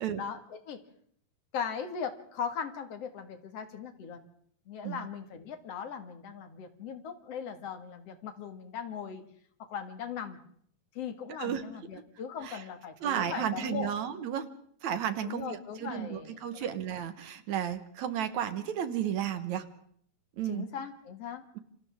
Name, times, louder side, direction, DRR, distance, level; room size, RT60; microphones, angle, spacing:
voice 1, 0.2-0.8 1.5-4.2 4.7-9.2 9.6-10.4 10.9-13.9 15.2-16.4 20.4-21.6, left 7 dB, 50° left, 7 dB, 2.7 m, -39 dB
voice 2, 13.0-14.5 14.8-19.7 20.4-20.7, right 9 dB, 65° right, 10 dB, 2.4 m, -33 dB
28.5 x 26.0 x 3.6 m, 0.63 s
omnidirectional pair, 3.8 m